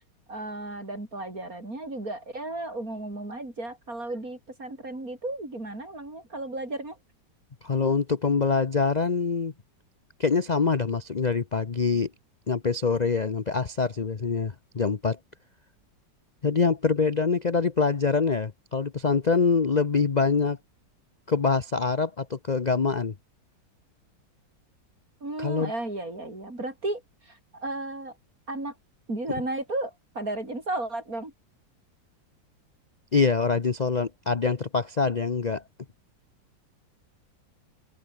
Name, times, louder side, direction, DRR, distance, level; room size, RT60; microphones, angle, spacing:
voice 1, 0.3-7.0 25.2-28.1 28.5-28.7 29.1-31.3, right 2 dB, 50° right, 7.2 m, -34 dB
voice 2, 7.6-9.5 10.2-12.1 12.5-15.2 16.4-20.6 21.3-23.1 25.4-25.7 33.1-35.6, left 5 dB, 35° left, 0.7 m, -25 dB
open air
omnidirectional pair, 2.0 m